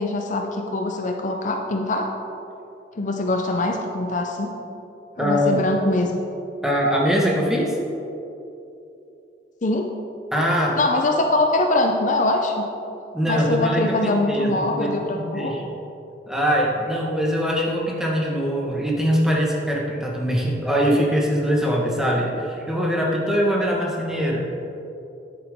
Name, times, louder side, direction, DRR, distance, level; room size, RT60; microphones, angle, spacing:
voice 1, 0.0-2.1 3.0-4.5 5.2-6.2 9.6-9.9 10.8-12.7 13.3-15.5, left 2 dB, 45° left, 3 dB, 0.6 m, -23 dB
voice 2, 5.2-5.6 6.6-7.8 10.3-10.8 13.1-15.6 16.3-24.5, equal, 5° right, -3 dB, 1.4 m, -22 dB
9.7 x 9.0 x 3.6 m, 2.8 s
head